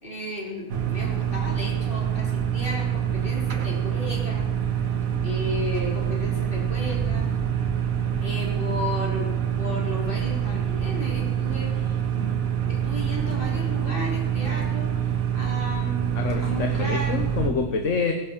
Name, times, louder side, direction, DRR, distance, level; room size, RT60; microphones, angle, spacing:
voice 1, 0.0-4.4 5.2-7.3 8.2-16.1 16.4-17.2, left 1 dB, 35° left, -2 dB, 4.3 m, -34 dB
sound 1, 0.7-17.5, right 9 dB, 65° right, 1.7 m, -26 dB
voice 2, 16.1-18.1, left 5 dB, 55° left, 5 dB, 1.5 m, -26 dB
17.5 x 10.5 x 7.3 m, 1.1 s
omnidirectional pair, 1.6 m